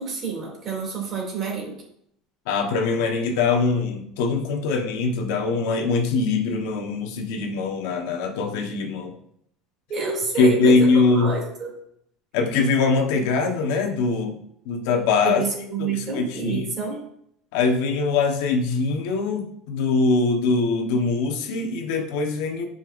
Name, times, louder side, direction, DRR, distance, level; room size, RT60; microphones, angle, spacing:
voice 1, 0.0-1.8 9.9-10.7 11.1-11.7 15.2-17.0, right 5 dB, 30° right, -1 dB, 2.7 m, -28 dB
voice 2, 2.5-9.1 10.3-11.4 12.3-14.4 14.6-15.4 15.8-16.7 17.5-22.7, left 4 dB, 70° left, 2 dB, 1.2 m, -22 dB
11.0 x 5.5 x 2.6 m, 0.70 s
cardioid pair, 170°, 0 cm